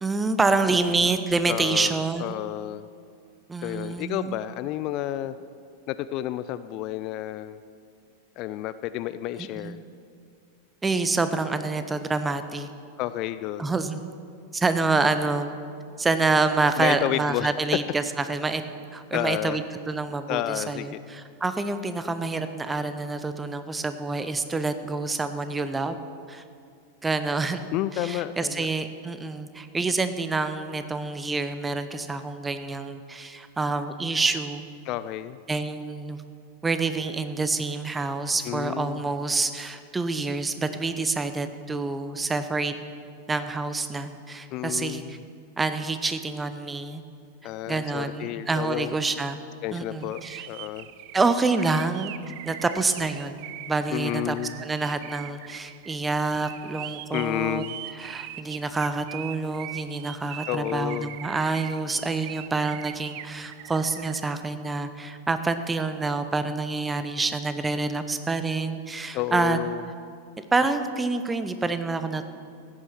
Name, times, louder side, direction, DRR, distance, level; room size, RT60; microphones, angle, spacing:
voice 1, 0.0-2.4 3.5-4.4 9.5-9.8 10.8-12.7 13.6-14.0 14.5-15.6 16.0-18.0 18.3-18.6 18.9-19.6 19.9-26.0 26.3-26.4 27.0-34.6 35.5-36.2 36.6-42.7 43.3-45.2 45.6-47.0 47.7-49.4 49.7-50.5 51.1-52.1 52.4-57.6 58.0-69.6 70.5-72.2, right 3 dB, 10° right, 10 dB, 0.8 m, -27 dB
voice 2, 1.5-2.9 3.6-5.4 5.9-7.6 8.4-9.8 13.0-13.7 16.8-17.5 19.1-19.6 20.3-21.0 27.7-28.7 34.8-35.4 38.4-39.0 44.5-45.2 47.4-48.9 49.6-50.9 53.9-54.6 57.1-57.8 60.5-61.2 69.1-69.8, left 13 dB, 40° left, 14 dB, 0.4 m, -31 dB
sound 1, 50.0-64.2, right 14 dB, 50° right, 0.5 m, -41 dB
15.0 x 9.5 x 6.1 m, 2.4 s
figure-of-eight pair, 90°, 0 cm